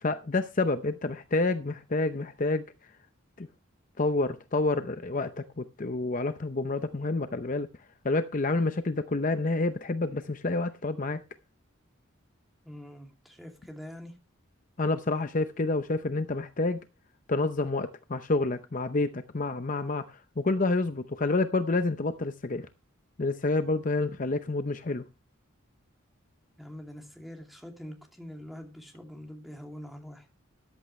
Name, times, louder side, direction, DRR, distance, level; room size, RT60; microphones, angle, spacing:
voice 1, 0.0-2.7 3.4-3.5 4.0-7.7 8.0-11.2 14.8-16.8 17.3-22.7 23.2-25.0, left 3 dB, 40° left, 0.7 m, -28 dB
voice 2, 12.6-14.2 26.6-30.3, equal, ahead, 2.6 m, -44 dB
14.0 x 11.0 x 3.2 m
head